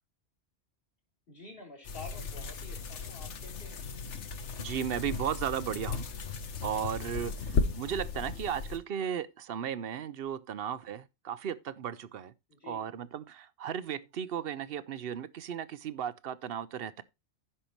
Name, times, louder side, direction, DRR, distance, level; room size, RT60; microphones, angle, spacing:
voice 1, 1.3-3.9 12.5-12.8, left 3 dB, 55° left, 3.9 m, -49 dB
sound 1, 1.8-8.8, left 4 dB, 85° left, 1.3 m, -36 dB
voice 2, 4.6-6.1 6.6-12.3 12.6-17.0, right 9 dB, 60° right, 0.8 m, -35 dB
15.5 x 5.6 x 3.0 m
omnidirectional pair, 1.2 m